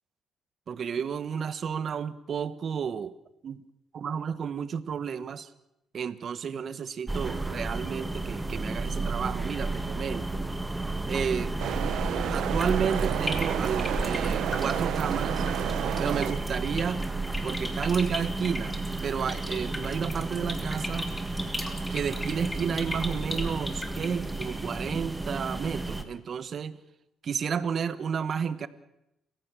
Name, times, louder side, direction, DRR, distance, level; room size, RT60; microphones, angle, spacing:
voice 1, 0.7-3.1 3.4-3.6 3.9-5.5 5.9-10.4 11.1-11.5 12.3-15.5 16.0-17.0 17.4-18.8 19.0-21.1 21.9-26.8 27.2-28.7, right 7 dB, 55° right, 14 dB, 1.3 m, -31 dB
sound 1, 7.1-26.0, right 2 dB, 10° right, 1.9 m, -32 dB
sound 2, 11.6-16.4, right 11 dB, 80° right, 1.0 m, -31 dB
sound 3, 12.5-24.5, left 1 dB, 15° left, 3.4 m, -39 dB
29.0 x 15.5 x 6.3 m, 0.85 s
cardioid pair, 90°, 0 cm